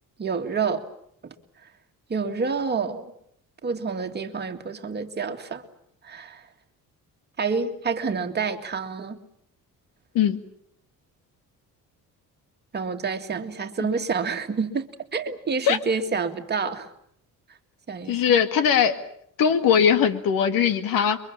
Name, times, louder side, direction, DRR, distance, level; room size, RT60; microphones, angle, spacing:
voice 1, 0.2-0.8 1.2-1.3 2.1-3.1 3.6-5.6 6.0-6.4 7.4-9.2 12.7-16.9 17.9-18.2, right 5 dB, 30° right, 6 dB, 2.1 m, -28 dB
voice 2, 18.1-19.0 19.4-21.2, left 7 dB, 80° left, 10 dB, 2.4 m, -20 dB
30.0 x 23.5 x 7.3 m, 0.68 s
cardioid pair, 160°, 34 cm